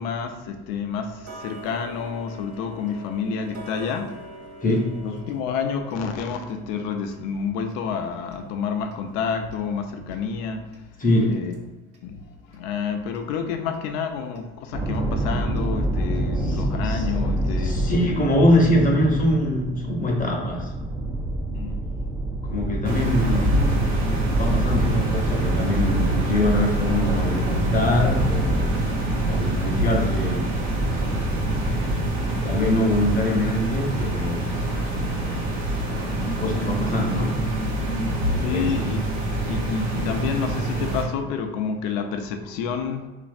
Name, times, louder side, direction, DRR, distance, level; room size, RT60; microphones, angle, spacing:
voice 1, 0.0-4.1 5.0-10.6 11.2-11.6 12.0-17.8 21.5-21.8 38.4-39.0 39.5-43.1, left 6 dB, 70° left, 6 dB, 0.5 m, -29 dB
Tick-tock, 1.2-12.1 12.5-12.6 13.1-13.2 13.7-13.8 14.4-14.5 14.9-15.0 15.6-15.7 16.2-16.3, right 1 dB, 50° right, 0.7 m, -45 dB
voice 2, 4.6-5.0 11.0-11.4 16.4-17.0 17.6-20.7 22.4-23.9 24.4-28.7 29.2-30.5 32.4-34.7 36.4-37.4 38.3-38.7, left 1 dB, 25° left, 0 dB, 0.8 m, -23 dB
sound 1, 14.7-34.5, right 1 dB, 15° right, 0.4 m, -28 dB
sound 2, 22.8-41.0, right 1 dB, 90° right, 0.8 m, -26 dB
3.1 x 2.5 x 2.5 m, 1.1 s
hypercardioid pair, 65°, 31 cm